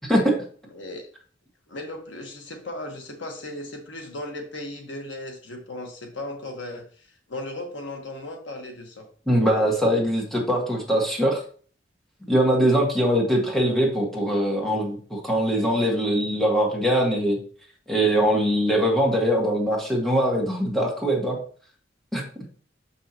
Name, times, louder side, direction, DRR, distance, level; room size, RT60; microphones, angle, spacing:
voice 1, 0.7-1.1 1.7-9.1, left 1 dB, 75° left, 3 dB, 1.4 m, -36 dB
voice 2, 9.3-11.4 12.3-17.4 17.9-21.4 22.1-22.2, equal, ahead, -2 dB, 1.7 m, -22 dB
7.3 x 5.6 x 2.9 m, 0.43 s
head